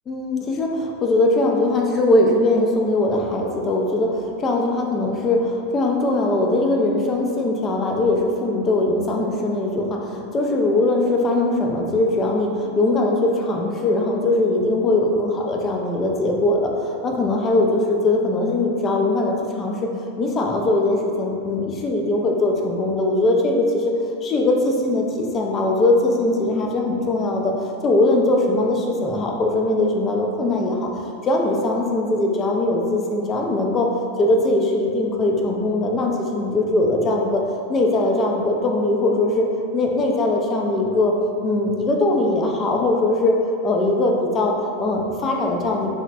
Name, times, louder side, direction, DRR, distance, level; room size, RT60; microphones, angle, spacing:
voice 1, 0.1-23.9 24.2-39.5 39.7-41.1 41.4-45.9, left 2 dB, 30° left, 0 dB, 0.3 m, -21 dB
2.9 x 2.1 x 2.5 m, 2.5 s
hypercardioid pair, 95°, 0 cm